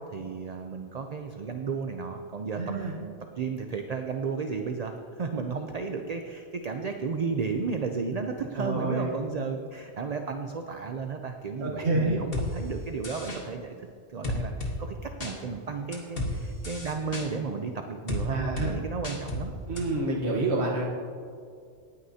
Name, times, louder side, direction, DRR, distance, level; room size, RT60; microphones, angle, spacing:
voice 1, 0.0-13.7 14.1-19.9, right 5 dB, 45° right, 4 dB, 0.6 m, -33 dB
voice 2, 2.6-2.9 8.6-9.1 11.6-12.2 18.3-18.8 19.6-20.9, right 2 dB, 70° right, -4 dB, 1.5 m, -28 dB
sound 1, 12.3-12.5 13.0-13.4 14.2-14.7 15.2-15.3 15.9-16.3 16.6-17.3 18.1-18.2 18.6-18.7 19.0-19.4 19.8-19.9, left 1 dB, 55° left, 1.7 m, -32 dB
18.5 x 9.5 x 2.8 m, 2.2 s
omnidirectional pair, 1.2 m